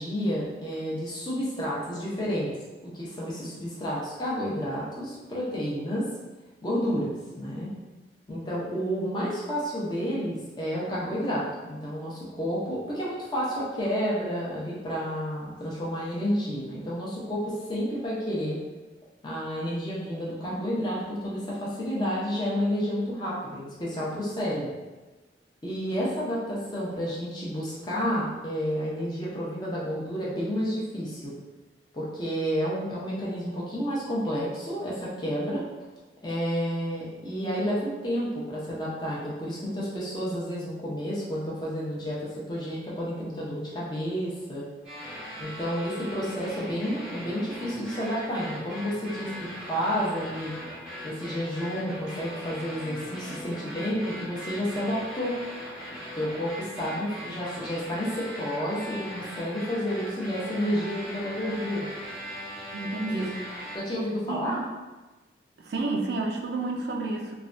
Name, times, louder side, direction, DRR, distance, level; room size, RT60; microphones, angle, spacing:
voice 1, 0.0-2.5 2.8-6.1 6.6-7.7 8.3-18.6 19.2-24.7 25.6-31.3 31.9-35.6 36.2-44.7 45.4-50.5 51.0-55.4 56.1-61.9 63.1-63.2 63.7-64.6, equal, 25° left, -6 dB, 0.6 m, -30 dB
sound 1, 44.8-63.8, equal, 5° right, 0.8 m, -40 dB
voice 2, 62.7-63.6 64.3-64.6 65.6-67.3, right 2 dB, 65° right, 1 dB, 0.3 m, -30 dB
3.1 x 2.2 x 2.5 m, 1.2 s
head